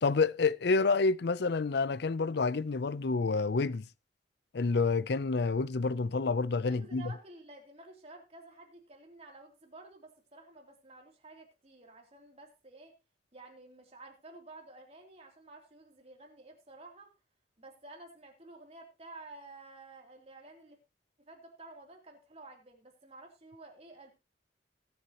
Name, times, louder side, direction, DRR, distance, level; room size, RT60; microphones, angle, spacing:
voice 1, 0.0-3.8 4.5-7.1, left 4 dB, 65° left, 0.5 m, -28 dB
voice 2, 6.6-13.0 13.3-17.1 17.6-20.8 21.2-24.1, right 2 dB, 35° right, 3.0 m, -52 dB
20.5 x 8.0 x 2.9 m
head